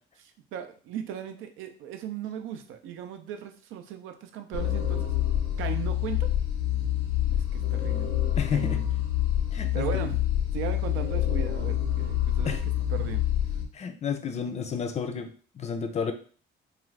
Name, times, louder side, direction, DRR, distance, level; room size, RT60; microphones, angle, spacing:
voice 1, 0.2-5.1 5.6-6.3 7.3-8.1 8.5-8.8 9.7-10.2 10.5-13.2, right 9 dB, 85° right, 7 dB, 0.5 m, -37 dB
sound 1, 4.5-13.7, left 11 dB, 85° left, 0.7 m, -27 dB
voice 2, 8.4-8.8 9.5-10.1 12.4-12.6 13.7-16.1, left 7 dB, 35° left, 8 dB, 0.4 m, -31 dB
2.4 x 2.4 x 3.1 m, 0.41 s
cardioid pair, 115°, 20 cm